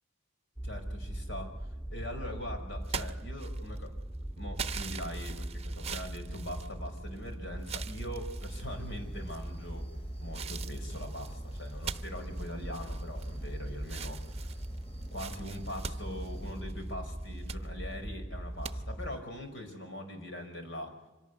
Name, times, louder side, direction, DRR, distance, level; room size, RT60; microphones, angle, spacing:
voice 1, 0.6-3.9 4.4-9.9 10.2-14.6 15.1-20.9, left 1 dB, 65° left, 5 dB, 5.2 m, -42 dB
sound 1, 0.6-19.2, right 1 dB, 15° left, 2.3 m, -40 dB
sound 2, 2.8-3.9 4.6-7.2 7.6-8.6 9.3-9.7 10.3-13.5 13.8-16.8 17.2-17.6 18.6-18.7, right 6 dB, 30° right, 0.9 m, -42 dB
sound 3, 8.4-16.6, equal, 30° left, 2.4 m, -54 dB
25.5 x 18.0 x 8.2 m, 1.1 s
head